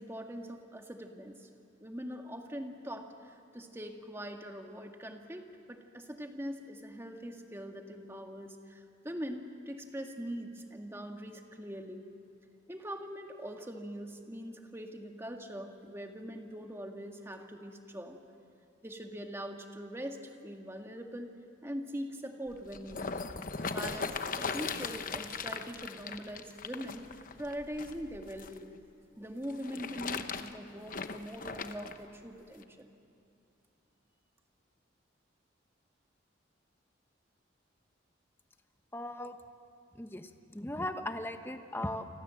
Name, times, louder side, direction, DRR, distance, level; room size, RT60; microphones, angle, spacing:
voice 1, 0.0-1.5 1.8-12.1 12.7-18.2 18.8-21.3 21.6-23.2 23.7-27.1 27.4-28.8 29.2-32.9, equal, 15° right, 3 dB, 1.8 m, -42 dB
sound 1, 22.5-28.6 29.4-32.0 32.6-32.7, left 5 dB, 45° left, 1.0 m, -39 dB
voice 2, 38.9-39.4 39.9-42.1, left 1 dB, 10° left, 7 dB, 1.1 m, -38 dB
29.0 x 25.0 x 7.7 m, 2.5 s
head